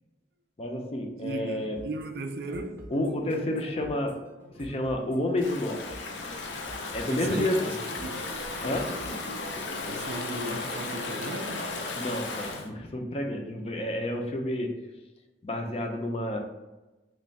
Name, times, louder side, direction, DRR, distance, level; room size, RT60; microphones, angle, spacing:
voice 1, 0.6-1.8 2.9-4.2 4.6-5.8 6.9-7.7 8.6-8.9 11.9-14.7 15.4-16.4, left 1 dB, 35° left, 0.4 m, -30 dB
voice 2, 1.2-2.9 7.1-8.3 9.9-11.7, right 2 dB, 55° right, 0.3 m, -36 dB
sound 1, 1.8-10.0, equal, 10° right, 0.6 m, -47 dB
Stream / Ocean, 5.4-12.7, left 3 dB, 90° left, 0.5 m, -35 dB
sound 2, 8.0-11.8, equal, 75° left, 1.0 m, -43 dB
3.2 x 2.3 x 4.0 m
head